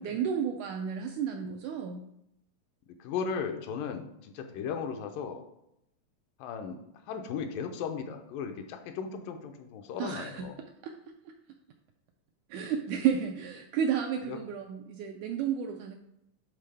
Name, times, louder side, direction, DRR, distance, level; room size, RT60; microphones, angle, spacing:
voice 1, 0.0-2.0 10.0-10.5 10.8-11.1 12.5-16.0, right 8 dB, 85° right, 4 dB, 1.7 m, -32 dB
voice 2, 2.9-5.4 6.4-6.8 7.1-10.6 14.3-14.4, left 6 dB, 85° left, 5 dB, 2.3 m, -36 dB
11.5 x 4.1 x 3.4 m, 0.80 s
omnidirectional pair, 4.0 m